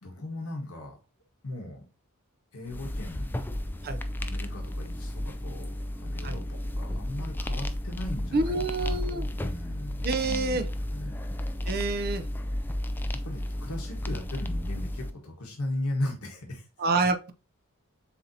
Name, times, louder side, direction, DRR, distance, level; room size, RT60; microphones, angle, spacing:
voice 1, 0.0-0.9 1.4-1.8 2.5-3.4 4.2-10.6 10.9-11.2 13.2-16.7, left 1 dB, 80° left, 1.5 m, -37 dB
sound 1, 2.6-15.1, left 1 dB, 10° left, 0.3 m, -33 dB
voice 2, 8.3-9.2 10.0-10.7 11.7-12.3 16.8-17.3, right 3 dB, 45° right, 0.5 m, -27 dB
7.1 x 2.7 x 2.7 m
head